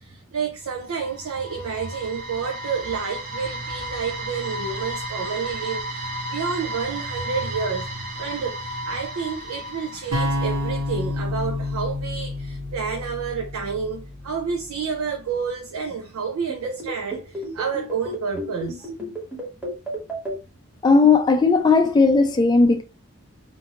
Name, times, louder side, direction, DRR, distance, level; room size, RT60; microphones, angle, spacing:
voice 1, 0.0-7.9 8.2-18.9, right 5 dB, 90° right, 0.5 m, -29 dB
sound 1, 0.7-10.8, right 1 dB, 40° right, 0.6 m, -33 dB
sound 2, 10.1-14.3, left 2 dB, 70° right, 1.1 m, -28 dB
sound 3, 16.5-20.3, right 1 dB, 5° right, 0.9 m, -31 dB
voice 2, 20.8-22.8, left 4 dB, 20° left, 0.3 m, -16 dB
2.6 x 2.5 x 2.8 m
head